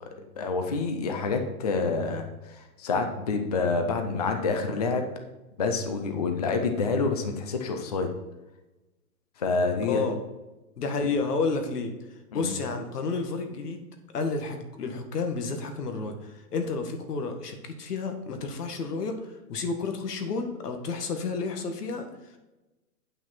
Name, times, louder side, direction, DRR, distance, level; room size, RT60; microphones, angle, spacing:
voice 1, 0.4-5.0 5.6-8.1 9.4-10.0 12.3-12.5, left 4 dB, 30° left, 5 dB, 0.4 m, -27 dB
voice 2, 9.8-10.2 10.8-13.9 14.1-22.4, left 4 dB, 90° left, 6 dB, 1.8 m, -31 dB
9.4 x 5.9 x 4.3 m, 1.1 s
hypercardioid pair, 175°, 46 cm